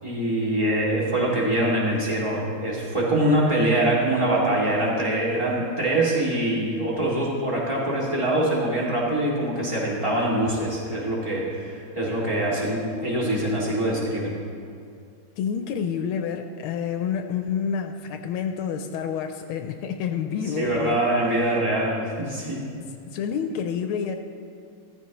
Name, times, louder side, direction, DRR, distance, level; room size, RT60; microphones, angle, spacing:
voice 1, 0.0-14.4 20.5-22.6, right 1 dB, 15° right, -5 dB, 2.3 m, -24 dB
voice 2, 15.4-21.0 23.1-24.1, left 7 dB, 85° left, 6 dB, 1.5 m, -28 dB
14.0 x 14.0 x 3.0 m, 2.4 s
omnidirectional pair, 2.3 m